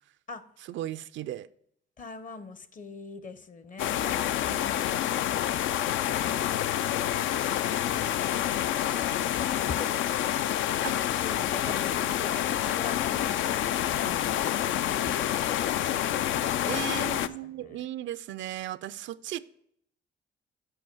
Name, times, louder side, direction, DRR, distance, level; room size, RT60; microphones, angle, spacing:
voice 1, 0.7-1.5 4.5-4.6 10.8-10.9 16.6-19.4, right 13 dB, 70° right, 0.4 m, -36 dB
voice 2, 2.0-5.7 8.9-10.2 11.1-13.4 14.0-17.8, left 4 dB, 40° left, 0.8 m, -44 dB
sound 1, 3.8-17.3, left 11 dB, 75° left, 0.4 m, -28 dB
7.8 x 5.0 x 4.5 m
cardioid pair, 90°, 20 cm